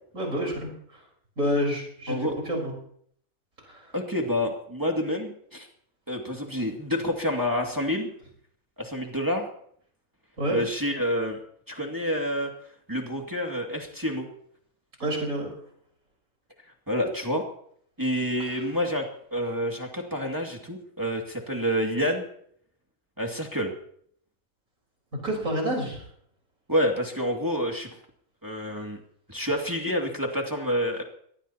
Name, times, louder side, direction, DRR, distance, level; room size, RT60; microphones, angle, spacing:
voice 1, 0.1-1.0 1.4-2.7 3.6-3.9 10.4-10.6 15.0-15.5 18.4-18.5 25.2-26.0, equal, 65° right, -1 dB, 4.9 m, -29 dB
voice 2, 3.9-5.7 6.1-8.1 8.8-9.5 10.5-11.4 11.7-12.5 12.9-14.3 16.9-17.4 18.0-22.3 23.2-23.7 26.7-27.9 28.4-29.0 29.3-31.0, equal, 15° right, 0 dB, 2.4 m, -28 dB
24.5 x 19.5 x 2.9 m, 0.64 s
omnidirectional pair, 1.5 m